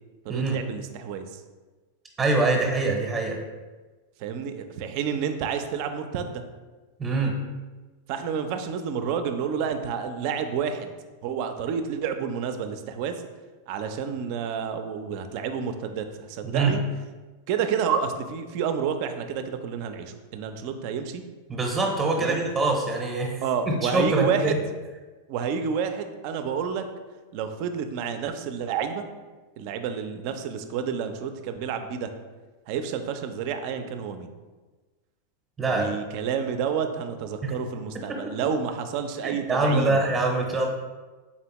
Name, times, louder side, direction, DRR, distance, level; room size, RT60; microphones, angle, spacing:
voice 1, 0.3-1.4 4.2-6.4 8.1-10.9 11.2-13.2 13.7-16.8 17.5-21.2 22.2-22.4 23.4-24.6 25.3-26.8 27.3-29.0 29.6-32.1 32.7-34.3 35.7-40.0, right 7 dB, 55° right, 8 dB, 0.4 m, -29 dB
voice 2, 2.2-3.4 7.0-7.3 16.4-16.7 21.5-23.4 23.7-24.6 35.6-35.9 37.4-37.6 38.1-38.3 39.2-40.7, right 3 dB, 20° right, 1 dB, 0.7 m, -24 dB
4.1 x 3.4 x 2.9 m, 1.3 s
hypercardioid pair, 105°, 0 cm